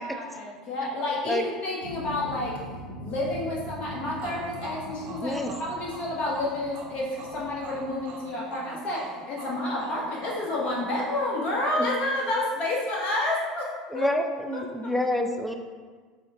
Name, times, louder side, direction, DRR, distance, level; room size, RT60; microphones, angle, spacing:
voice 1, 0.0-2.6 3.0-14.1 14.5-14.9, left 2 dB, 45° left, -3 dB, 1.1 m, -30 dB
sound 1, 1.8-7.9, left 1 dB, 85° left, 0.8 m, -42 dB
sound 2, 4.2-11.8, right 4 dB, 50° right, 0.5 m, -44 dB
voice 2, 5.1-5.5 11.8-11.9 13.9-15.5, left 1 dB, 5° left, 4 dB, 0.4 m, -28 dB
3.6 x 2.2 x 3.5 m, 1.5 s
hypercardioid pair, 80°, 3 cm